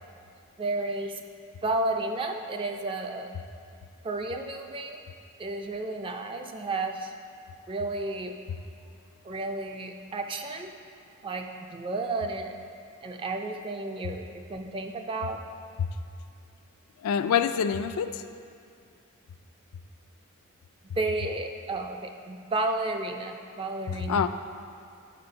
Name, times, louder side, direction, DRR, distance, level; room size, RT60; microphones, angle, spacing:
voice 1, 0.6-1.2 1.6-3.3 4.0-5.0 5.4-7.1 7.7-8.3 9.2-10.7 11.2-12.5 13.0-15.4 20.8-24.3, right 2 dB, 25° right, 5 dB, 0.4 m, -32 dB
voice 2, 17.0-18.2 23.9-24.3, left 7 dB, 80° left, 10 dB, 0.3 m, -26 dB
7.6 x 4.3 x 5.3 m, 2.5 s
head